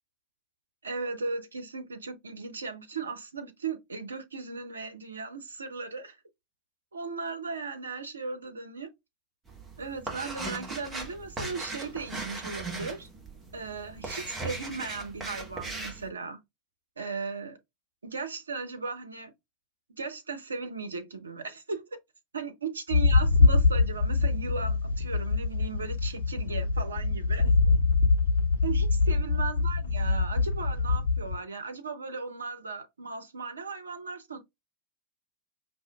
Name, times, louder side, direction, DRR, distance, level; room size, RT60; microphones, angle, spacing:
voice 1, 0.8-6.2 6.9-8.9 9.8-13.1 13.5-16.4 17.0-17.6 18.0-19.3 19.9-21.8 22.3-27.5 28.6-34.4, right 4 dB, 75° right, 0.7 m, -37 dB
sound 1, 9.5-16.1, right 3 dB, 15° right, 1.2 m, -38 dB
sound 2, 22.9-31.4, left 3 dB, 65° left, 1.3 m, -24 dB
5.5 x 2.7 x 2.3 m
figure-of-eight pair, 90°, 0 cm